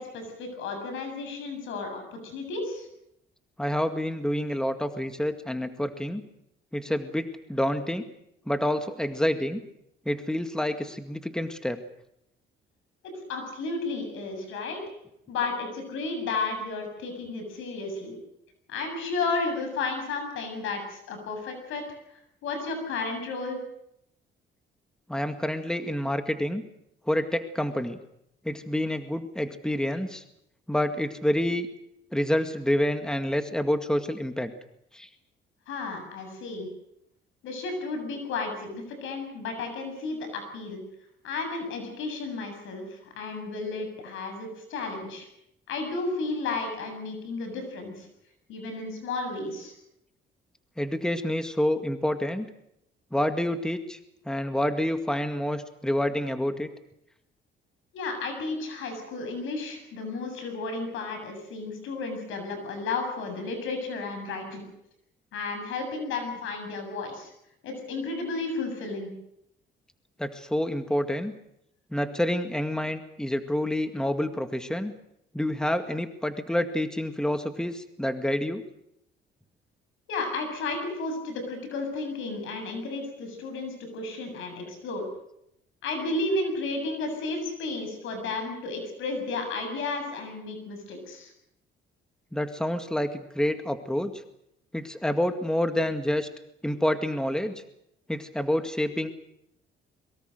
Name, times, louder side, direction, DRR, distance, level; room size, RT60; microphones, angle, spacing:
voice 1, 0.0-2.9 13.0-14.8 15.3-18.2 18.7-21.9 22.4-23.6 35.7-36.7 37.4-40.8 41.2-45.3 45.7-48.1 48.5-49.7 57.9-64.6 65.3-67.3 67.6-69.1 80.1-85.0 85.8-91.3, left 3 dB, 85° left, 6 dB, 7.4 m, -33 dB
voice 2, 3.6-6.2 6.7-8.1 8.5-9.6 10.1-11.8 25.1-26.6 27.1-28.0 28.4-30.2 30.7-31.7 32.1-34.5 34.9-35.1 50.8-52.5 53.1-54.0 54.3-56.7 70.2-71.3 71.9-74.9 75.3-78.6 92.3-94.2 94.7-96.3 96.6-97.5 98.1-99.2, left 1 dB, 5° left, 8 dB, 2.0 m, -28 dB
23.5 x 23.0 x 6.6 m, 0.78 s
cardioid pair, 90°, 20 cm